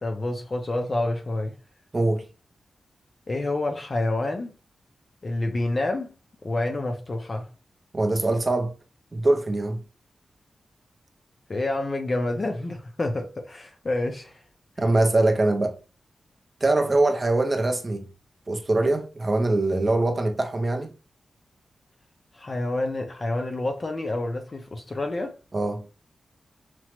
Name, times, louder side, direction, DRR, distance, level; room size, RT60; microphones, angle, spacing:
voice 1, 0.0-1.5 3.3-4.5 5.2-6.1 6.4-7.5 11.5-14.4 22.3-25.4, left 2 dB, 35° left, 0.4 m, -28 dB
voice 2, 1.9-2.2 7.9-8.7 9.1-9.8 14.8-15.8 16.6-18.1 18.5-20.9 25.5-25.8, right 2 dB, 25° right, 0.4 m, -23 dB
5.9 x 2.0 x 2.9 m
wide cardioid pair, 170°, 0 cm